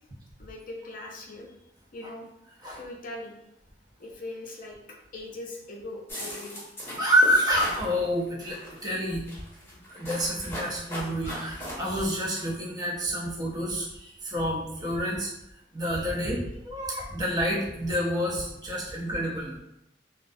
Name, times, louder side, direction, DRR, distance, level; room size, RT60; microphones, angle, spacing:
voice 1, 0.4-1.5 1.9-2.3 2.8-3.3 4.0-4.8 5.1-6.7, left 2 dB, 50° left, -1 dB, 0.5 m, -40 dB
sound 1, 6.1-7.9 8.4-8.9 9.3-11.7, equal, 15° left, 0.8 m, -38 dB
voice 2, 7.0-9.2 9.9-15.3 15.7-19.6, equal, 20° right, -4 dB, 0.6 m, -28 dB
2.3 x 2.3 x 2.5 m, 0.84 s
head